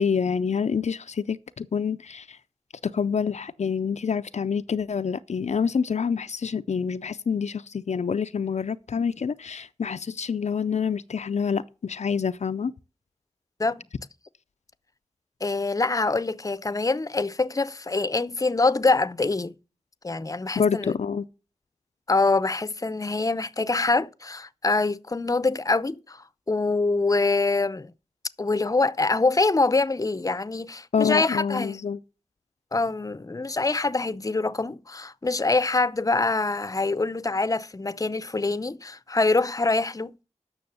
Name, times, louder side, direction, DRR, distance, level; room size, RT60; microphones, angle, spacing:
voice 1, 0.0-2.4 2.8-12.7 20.6-21.2 30.9-32.0, left 6 dB, 85° left, 0.5 m, -27 dB
voice 2, 15.4-19.5 20.0-20.9 22.1-27.9 28.4-31.8 32.7-40.2, left 3 dB, 30° left, 0.6 m, -25 dB
9.4 x 6.4 x 6.8 m
wide cardioid pair, 65°, 12 cm